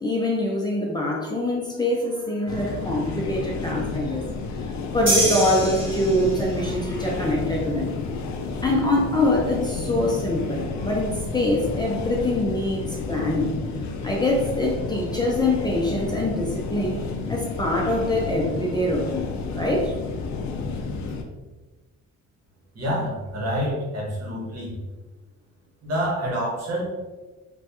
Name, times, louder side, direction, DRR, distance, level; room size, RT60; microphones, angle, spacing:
voice 1, 0.0-4.3 4.9-8.0 8.6-13.5 14.0-19.9, left 1 dB, 15° left, -2 dB, 0.5 m, -24 dB
sound 1, 2.5-21.2, left 4 dB, 70° left, 0.5 m, -31 dB
sound 2, 5.1-6.6, right 1 dB, 40° right, 1.4 m, -25 dB
voice 2, 22.7-24.7 25.8-26.8, equal, 55° right, -4 dB, 1.2 m, -27 dB
3.1 x 2.3 x 2.9 m, 1.2 s
cardioid pair, 90°, 30 cm